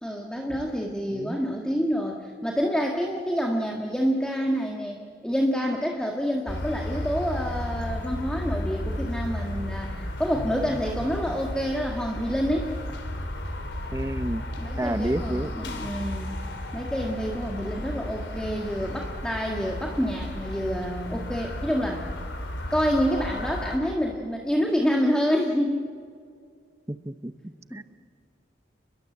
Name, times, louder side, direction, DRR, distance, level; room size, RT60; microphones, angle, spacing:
voice 1, 0.0-12.7 14.6-16.4 16.7-22.0 22.7-25.9 27.7-27.8, equal, 5° left, 0 dB, 1.8 m, -27 dB
voice 2, 1.1-1.4 13.9-14.4 14.8-15.5 26.9-27.8, right 1 dB, 15° right, 11 dB, 0.8 m, -30 dB
sound 1, 6.5-23.8, left 1 dB, 80° left, 3.9 m, -33 dB
30.0 x 22.0 x 8.0 m, 2.2 s
head